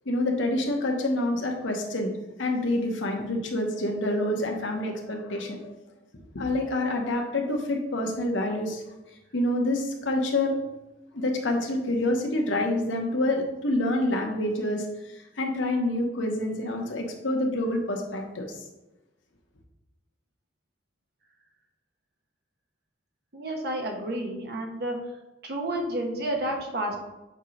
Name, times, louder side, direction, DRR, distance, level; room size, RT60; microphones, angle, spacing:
voice 1, 0.0-2.1 2.4-5.7 6.3-8.8 9.3-10.6 11.1-14.8 15.1-18.6, left 1 dB, 90° left, 2 dB, 1.0 m, -27 dB
voice 2, 23.3-25.0 25.4-27.0, right 1 dB, 60° right, 1 dB, 1.0 m, -30 dB
6.4 x 2.9 x 5.1 m, 1.0 s
head